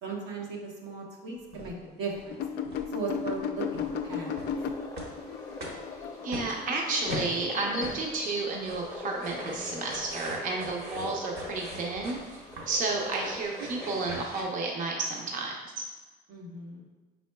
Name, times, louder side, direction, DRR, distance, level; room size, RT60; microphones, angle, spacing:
voice 1, 0.0-2.4 2.9-4.5 16.3-16.8, right 4 dB, 90° right, -2 dB, 1.0 m, -37 dB
sound 1, 1.5-1.7 2.1-2.4 2.6-2.9 3.2-3.4 3.7-14.4, right 1 dB, 70° right, 1.3 m, -43 dB
sound 2, 2.3-7.8, left 7 dB, 80° left, 0.4 m, -35 dB
sound 3, 3.7-14.3, left 2 dB, 20° left, 0.6 m, -42 dB
voice 2, 6.2-15.5, right 3 dB, 50° right, 0 dB, 0.7 m, -32 dB
5.5 x 4.1 x 2.2 m, 1.3 s
cardioid pair, 110°, 17 cm